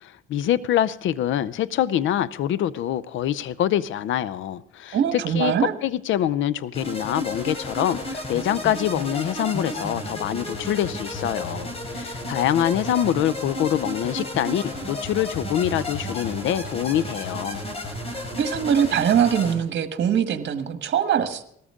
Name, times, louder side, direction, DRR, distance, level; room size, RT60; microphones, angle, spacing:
voice 1, 0.0-5.5 5.8-17.6, left 11 dB, 75° left, 17 dB, 0.6 m, -25 dB
voice 2, 4.9-5.7 18.1-21.4, right 8 dB, 65° right, 8 dB, 1.6 m, -22 dB
sound 1, 6.7-19.5, left 1 dB, 30° left, 4.7 m, -32 dB
19.0 x 14.0 x 3.7 m, 0.68 s
cardioid pair, 90°, 20 cm